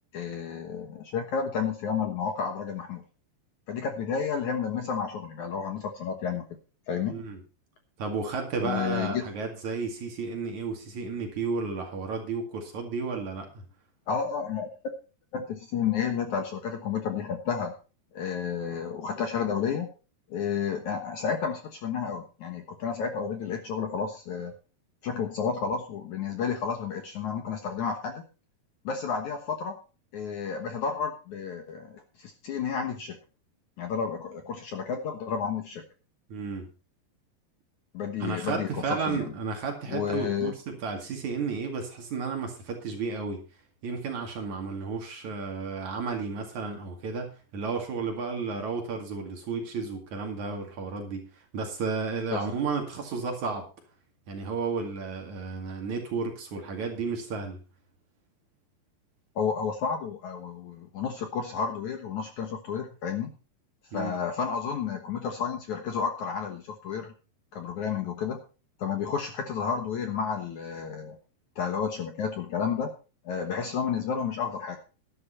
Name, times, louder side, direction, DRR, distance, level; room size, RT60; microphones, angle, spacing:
voice 1, 0.1-3.0 3.7-6.4 6.9-7.2 8.6-9.3 14.1-14.7 15.3-17.7 18.1-19.9 20.3-24.5 25.0-28.2 28.8-29.8 30.1-33.2 33.8-35.8 37.9-39.3 39.9-40.5 52.3-52.4 59.4-63.3 63.9-67.1 67.5-68.4 68.8-71.2 71.6-72.9 73.2-74.8, left 6 dB, 60° left, 5 dB, 2.2 m, -31 dB
voice 2, 7.1-7.4 8.0-13.5 36.3-36.7 38.2-43.4 43.8-53.7 54.3-57.6 63.9-64.2, right 4 dB, 50° right, 2 dB, 3.2 m, -32 dB
12.5 x 11.0 x 4.3 m, 0.34 s
omnidirectional pair, 4.7 m